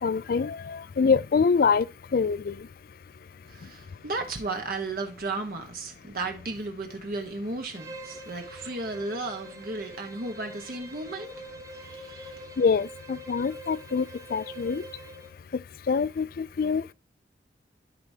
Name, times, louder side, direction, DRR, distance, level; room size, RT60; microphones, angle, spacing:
voice 1, 0.0-1.9 2.1-2.6 12.6-14.1 14.3-14.8 15.9-16.9, left 5 dB, 55° left, 0.4 m, -25 dB
voice 2, 3.5-11.4 11.7-12.6, right 2 dB, 55° right, 1.1 m, -35 dB
Bowed string instrument, 7.7-15.4, right 2 dB, 20° right, 1.0 m, -44 dB
12.5 x 4.7 x 2.8 m
head